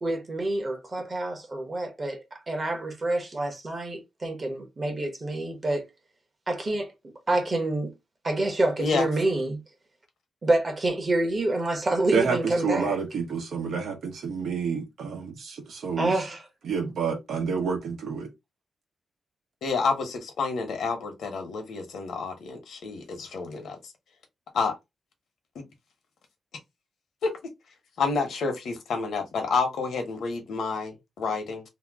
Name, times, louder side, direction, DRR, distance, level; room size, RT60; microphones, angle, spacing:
voice 1, 0.0-5.8 6.5-6.9 7.3-7.9 8.2-9.6 10.4-13.0 16.0-16.4, right 2 dB, 30° right, 0.9 m, -27 dB
voice 2, 12.1-16.1 16.6-18.3, right 5 dB, 85° right, 1.0 m, -29 dB
voice 3, 19.6-23.9 24.5-24.7 25.5-25.6 27.2-27.3 28.0-31.6, left 4 dB, 85° left, 0.9 m, -29 dB
2.8 x 2.1 x 3.5 m
wide cardioid pair, 160°, 0 cm